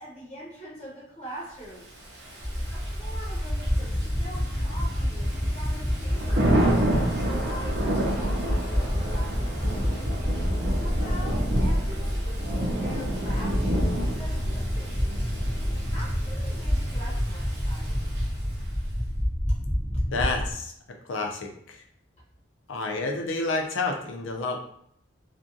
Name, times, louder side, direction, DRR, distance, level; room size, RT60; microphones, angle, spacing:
voice 1, 0.0-6.6 7.2-9.9 10.6-15.0 15.6-18.1 19.5-19.6, equal, 35° left, -6 dB, 0.7 m, -44 dB
Thunder / Rain, 2.0-18.6, right 1 dB, 55° right, 0.6 m, -30 dB
sound 1, 2.4-20.5, equal, ahead, 0.4 m, -28 dB
voice 2, 20.1-20.7 21.1-21.8 22.7-24.6, left 3 dB, 80° left, 3 dB, 0.5 m, -29 dB
2.5 x 2.2 x 2.6 m, 0.67 s
head